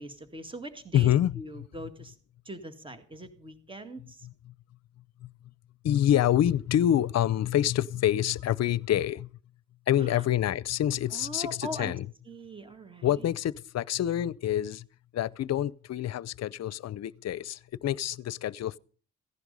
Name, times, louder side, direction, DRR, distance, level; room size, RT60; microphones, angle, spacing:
voice 1, 0.0-2.1 2.5-4.3 10.0-10.2 11.1-11.9 12.3-13.2, right 1 dB, 15° right, 2.0 m, -41 dB
voice 2, 0.9-1.7 4.2-4.5 5.2-5.3 5.8-9.3 9.9-12.1 13.0-14.9 15.1-18.8, left 11 dB, 60° left, 0.7 m, -27 dB
16.0 x 11.0 x 5.4 m
cardioid pair, 90°, 30 cm